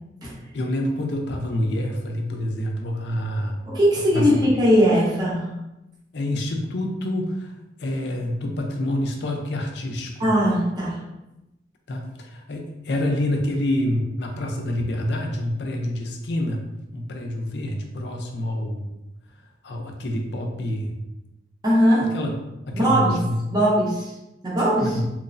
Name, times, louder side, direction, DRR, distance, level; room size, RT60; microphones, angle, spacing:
voice 1, 0.5-3.6 4.1-4.3 6.1-7.5 7.8-10.3 11.9-16.6 16.9-18.9 19.6-20.9 22.1-22.3 22.7-23.4 24.8-25.1, left 1 dB, 65° left, 2 dB, 0.4 m, -27 dB
voice 2, 3.7-5.5 10.2-11.0 21.6-22.2 22.7-23.2 23.5-24.1 24.4-25.0, equal, 20° right, -7 dB, 0.6 m, -19 dB
3.0 x 2.0 x 2.5 m, 0.93 s
head